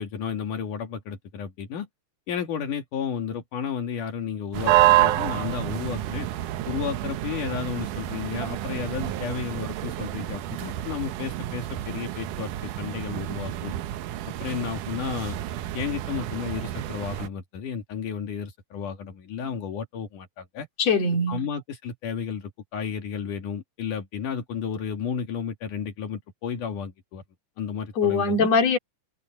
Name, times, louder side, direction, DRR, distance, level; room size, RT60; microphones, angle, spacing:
voice 1, 0.0-1.9 2.3-6.3 6.7-13.8 14.2-15.4 15.7-20.7 21.3-27.2 27.6-28.5, left 7 dB, 80° left, 3.7 m, -32 dB
sound 1, 4.5-17.3, right 14 dB, 85° right, 2.4 m, -28 dB
voice 2, 20.8-21.5 28.0-28.8, left 4 dB, 55° left, 4.5 m, -22 dB
omnidirectional pair, 3.6 m